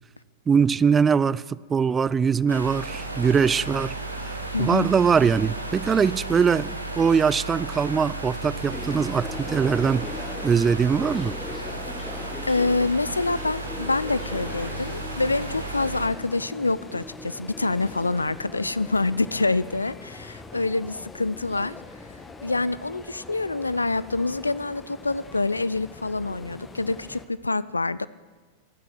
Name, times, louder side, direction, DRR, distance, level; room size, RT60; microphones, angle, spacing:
voice 1, 0.5-4.0 4.2-4.3 4.6-10.1 10.4-11.3, right 6 dB, 20° right, 0.4 m, -22 dB
sound 1, 2.5-16.1, right 2 dB, 85° right, 1.5 m, -34 dB
voice 2, 4.5-4.9 12.0-12.1 12.4-21.8 22.4-28.1, left 3 dB, 80° left, 0.4 m, -26 dB
sound 2, 8.7-27.3, left 3 dB, 15° left, 1.4 m, -40 dB
23.5 x 9.3 x 6.2 m
figure-of-eight pair, 90°, 0 cm